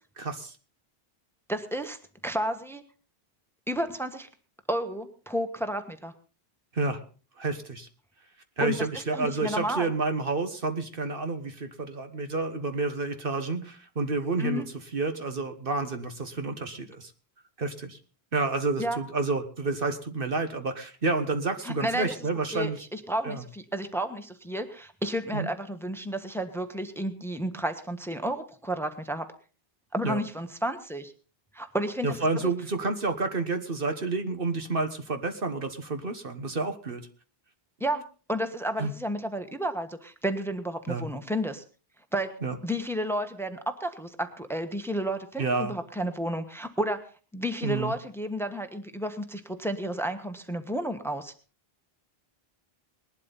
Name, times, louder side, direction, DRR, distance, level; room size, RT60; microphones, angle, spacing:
voice 1, 0.2-0.6 6.7-7.0 7.4-7.9 8.6-14.6 14.9-17.1 17.6-18.0 18.3-22.8 23.2-23.4 25.3-25.5 30.0-30.2 32.0-37.0 38.8-38.9 40.9-41.0 42.4-42.6 45.4-45.7 47.6-47.9, right 3 dB, 60° right, 7 dB, 1.6 m, -29 dB
voice 2, 1.5-2.0 2.2-2.8 3.7-4.3 4.7-6.1 8.6-9.9 14.4-14.7 18.8-19.0 21.6-22.1 22.5-29.3 29.9-31.1 31.5-32.5 37.8-38.0 38.3-41.6 42.1-42.3 42.6-47.0 47.3-51.3, equal, ahead, 8 dB, 1.3 m, -31 dB
20.0 x 12.0 x 4.1 m, 0.37 s
omnidirectional pair, 1.0 m